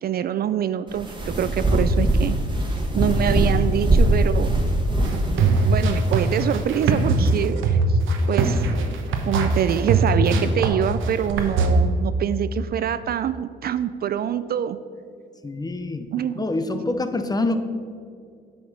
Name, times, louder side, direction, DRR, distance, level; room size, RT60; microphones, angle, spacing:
voice 1, 0.0-2.4 3.0-4.6 5.3-8.0 8.3-8.7 9.2-14.8 16.1-16.4, right 9 dB, 50° right, 13 dB, 0.4 m, -25 dB
sound 1, 0.9-7.3, right 1 dB, 25° right, 1.4 m, -22 dB
sound 2, 5.0-11.7, right 3 dB, 80° right, 1.0 m, -21 dB
voice 2, 15.4-16.1 16.4-17.6, left 2 dB, 20° left, 9 dB, 0.7 m, -25 dB
8.5 x 5.2 x 6.0 m, 2.2 s
cardioid pair, 90°, 20 cm